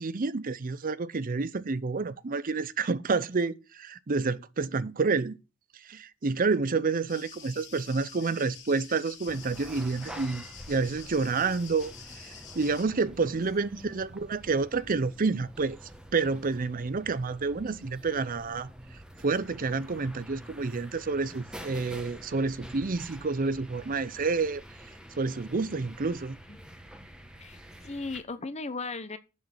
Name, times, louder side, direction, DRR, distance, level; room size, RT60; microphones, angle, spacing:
voice 1, 0.0-5.4 5.8-15.8 16.1-18.7 19.2-24.6 25.2-26.4, right 4 dB, 40° right, 0.5 m, -29 dB
sound 1, 7.1-12.8, left 7 dB, 55° left, 2.3 m, -48 dB
sound 2, 9.3-28.2, equal, 5° right, 1.1 m, -47 dB
voice 2, 27.4-29.2, left 3 dB, 30° left, 0.8 m, -37 dB
7.3 x 6.4 x 7.9 m
head